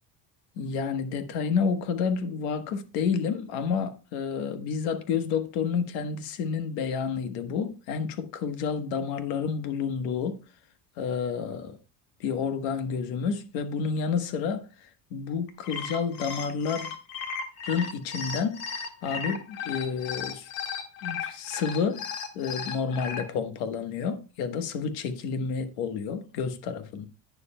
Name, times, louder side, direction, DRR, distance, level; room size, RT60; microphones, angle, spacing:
voice 1, 0.6-10.4 11.0-11.8 12.2-16.9 17.6-20.5 21.0-22.0 22.3-27.0, left 6 dB, 90° left, 1.2 m, -30 dB
sound 1, 15.5-23.2, left 6 dB, 70° left, 1.6 m, -35 dB
11.0 x 9.6 x 2.2 m
cardioid pair, 155°, 37 cm